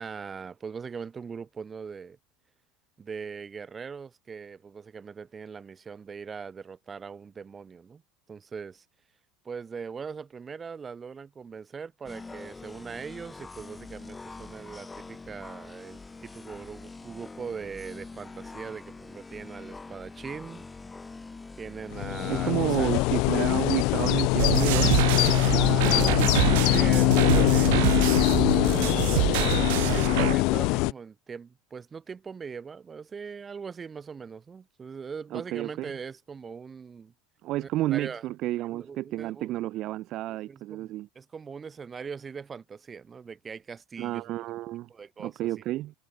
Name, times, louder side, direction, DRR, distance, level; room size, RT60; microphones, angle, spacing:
voice 1, 0.0-2.2 3.0-8.0 8.3-8.8 9.4-20.7 21.6-22.9 25.5-26.2 26.7-37.1 37.6-38.2 38.7-39.5 40.3-44.3 44.9-45.5, right 6 dB, 25° right, 7.4 m, -40 dB
sound 1, 12.0-23.1, left 3 dB, 15° left, 1.5 m, -44 dB
sound 2, 21.9-30.9, left 25 dB, 60° left, 0.4 m, -23 dB
voice 2, 22.3-25.0 25.5-26.1 35.3-35.9 37.4-41.1 44.0-44.9 45.2-45.9, right 16 dB, 50° right, 1.8 m, -31 dB
sound 3, 24.4-30.4, right 22 dB, 70° right, 0.3 m, -26 dB
hypercardioid pair, 80°, 0 cm